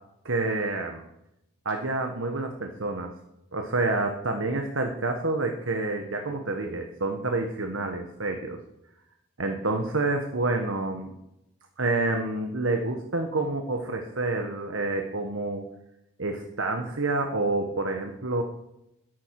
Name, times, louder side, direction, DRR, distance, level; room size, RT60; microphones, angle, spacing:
voice 1, 0.2-1.0 1.6-3.1 3.5-8.6 9.4-11.2 11.8-15.7 16.2-18.4, right 2 dB, 90° right, 4 dB, 1.4 m, -28 dB
13.0 x 11.0 x 4.8 m, 0.83 s
head